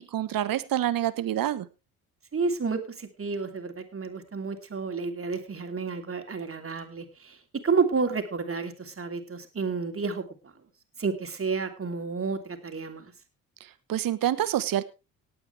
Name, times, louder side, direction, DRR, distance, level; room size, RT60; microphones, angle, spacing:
voice 1, 0.0-1.7 13.6-14.8, right 12 dB, 55° right, 14 dB, 1.2 m, -27 dB
voice 2, 2.3-10.5 11.0-13.1, right 4 dB, 30° right, 6 dB, 3.0 m, -30 dB
18.5 x 8.7 x 3.3 m, 0.27 s
hypercardioid pair, 55°, 42 cm